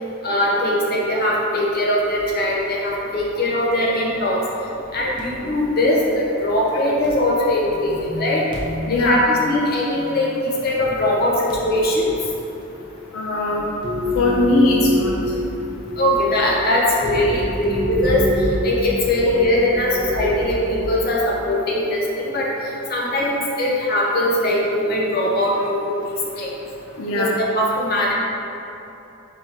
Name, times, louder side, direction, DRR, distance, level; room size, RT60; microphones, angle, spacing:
voice 1, 0.2-4.4 4.9-8.4 8.9-12.1 16.0-22.5 22.9-26.5 27.1-28.1, left 1 dB, 45° left, -4 dB, 0.7 m, -21 dB
sound 1, 2.1-2.4 2.8-3.2 3.5-3.6 4.2-4.3 4.7-7.1 7.5-10.3 10.6-11.1 11.5-12.2 12.6-13.0 13.3-20.9, equal, 20° right, 0.6 m, -28 dB
voice 2, 8.9-9.2 13.1-13.7 14.1-15.1 27.0-27.3, left 2 dB, 75° left, -2 dB, 0.4 m, -19 dB
3.5 x 2.9 x 4.3 m, 2.9 s
head